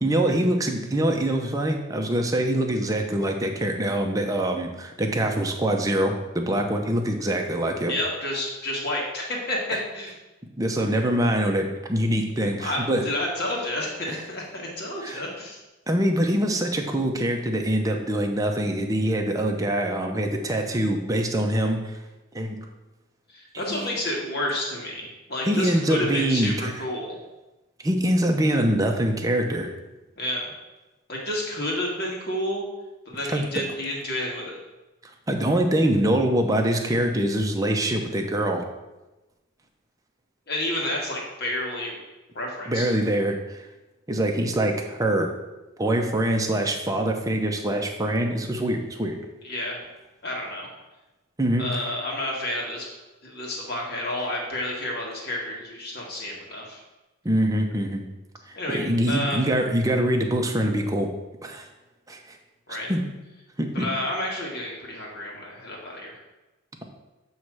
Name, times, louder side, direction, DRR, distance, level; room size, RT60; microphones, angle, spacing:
voice 1, 0.0-7.9 10.6-13.1 14.1-14.2 15.0-15.2 15.9-22.0 22.3-22.6 23.6-23.8 25.5-26.7 27.8-29.7 33.3-33.4 35.3-38.6 42.7-43.7 44.1-45.3 45.8-49.2 51.4-51.8 57.2-58.0 58.5-61.1 61.4-61.7 62.1-62.2 62.7-63.0 63.6-63.9, right 1 dB, 15° right, 2 dB, 0.7 m, -24 dB
voice 2, 7.9-10.1 12.6-15.6 23.3-27.2 30.2-30.5 31.1-32.7 33.1-34.6 40.5-42.0 42.4-42.9 49.4-49.8 50.2-50.7 51.6-52.9 53.2-56.8 58.6-58.8 59.1-59.4 62.7-62.9 63.7-66.2, left 1 dB, 50° left, -2 dB, 1.8 m, -30 dB
7.9 x 3.2 x 6.1 m, 1.1 s
head